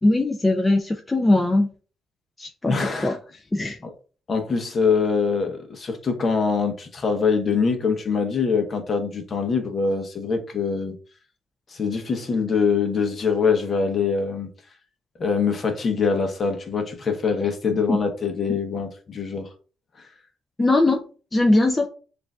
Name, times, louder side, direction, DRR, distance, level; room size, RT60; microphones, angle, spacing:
voice 1, 0.0-1.7 2.4-2.8 3.0-3.2 3.5-3.8 18.5-18.6 20.6-21.0 21.3-21.9, left 2 dB, 20° left, 0.5 m, -20 dB
voice 2, 2.7-3.2 3.8-3.9 4.3-10.9 11.7-14.5 15.2-19.5, left 5 dB, 45° left, 0.9 m, -24 dB
6.8 x 2.6 x 2.4 m
cardioid pair, 90°, 0 cm